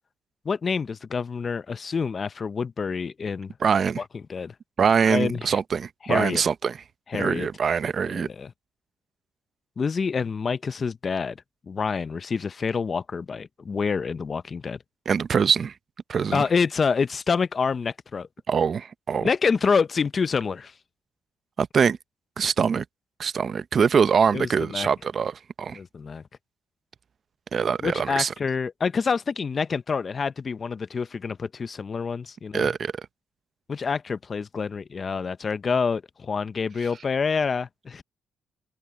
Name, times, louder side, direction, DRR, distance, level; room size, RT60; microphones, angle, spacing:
voice 1, 0.4-3.5 4.0-4.1 4.3-4.5 5.1-5.6 6.0-6.4 7.1-7.5 8.0-8.5 9.8-11.4 11.7-14.8 16.3-18.3 19.2-20.7 24.3-24.9 25.8-26.2 27.8-32.7 33.7-38.0, left 5 dB, 40° left, 0.7 m, -27 dB
voice 2, 3.6-4.0 4.8-6.8 7.1-8.3 15.1-15.7 16.1-16.4 18.5-19.3 21.6-22.0 22.4-22.8 23.2-25.8 27.5-28.3 32.5-32.9, right 6 dB, 50° right, 0.6 m, -23 dB
cardioid pair, 90°, 0 cm